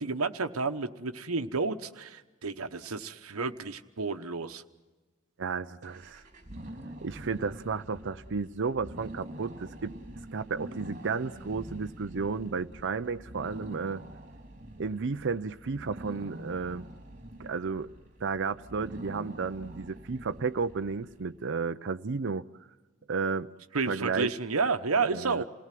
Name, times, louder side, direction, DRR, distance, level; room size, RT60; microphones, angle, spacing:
voice 1, 0.0-4.6 23.7-25.4, right 4 dB, 80° right, 8 dB, 1.1 m, -31 dB
voice 2, 5.4-6.2 7.0-9.9 10.3-14.0 14.8-16.8 17.4-17.9 18.2-22.4 23.1-23.5 23.8-24.3 25.0-25.4, right 4 dB, 60° right, 9 dB, 0.6 m, -33 dB
sound 1, 5.8-21.2, right 1 dB, 35° right, 3.4 m, -45 dB
28.5 x 18.0 x 7.6 m, 1.2 s
head